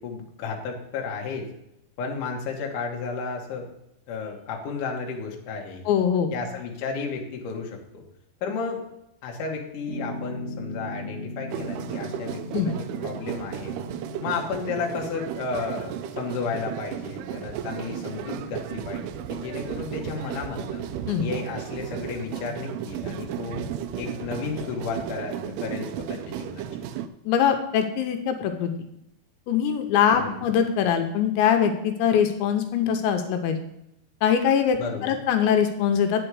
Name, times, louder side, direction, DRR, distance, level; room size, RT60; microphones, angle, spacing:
voice 1, 0.0-1.5 2.0-3.7 4.1-5.9 6.3-8.0 8.4-8.8 9.2-13.7 14.2-20.9 21.2-23.7 24.0-26.7 30.2-30.5 34.8-35.2, left 5 dB, 60° left, 0 dB, 2.4 m, -33 dB
voice 2, 5.9-6.3 12.5-12.7 21.1-21.3 27.3-28.7 29.5-33.6 34.2-36.2, left 8 dB, 85° left, 6 dB, 3.1 m, -22 dB
Piano, 9.9-15.0, left 1 dB, 55° right, 1.2 m, -38 dB
sound 1, 11.5-27.1, right 9 dB, 80° right, 2.4 m, -34 dB
9.0 x 6.8 x 4.7 m, 0.83 s
omnidirectional pair, 5.1 m